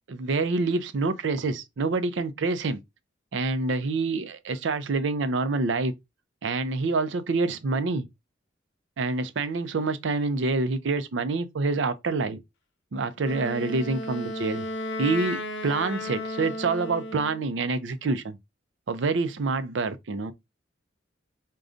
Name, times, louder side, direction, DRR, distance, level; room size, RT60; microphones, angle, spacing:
voice 1, 0.1-2.8 3.3-5.9 6.4-8.1 9.0-12.4 12.9-14.6 15.0-18.4 18.9-20.3, right 3 dB, 75° right, 0.5 m, -27 dB
Wind instrument woodwind instrument, 13.2-17.4, left 2 dB, 65° left, 0.6 m, -34 dB
4.9 x 2.2 x 2.5 m
head